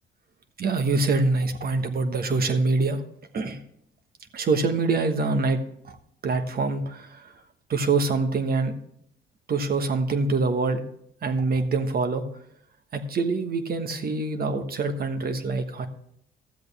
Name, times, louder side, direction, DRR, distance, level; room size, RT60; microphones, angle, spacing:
voice 1, 0.6-3.0 3.3-3.6 4.3-5.6 5.8-6.0 6.2-7.3 7.7-8.8 9.5-10.8 11.2-12.3 12.9-15.9, right 3 dB, 50° right, 7 dB, 1.3 m, -25 dB
13.0 x 7.9 x 3.4 m, 0.71 s
cardioid pair, 90°, 20 cm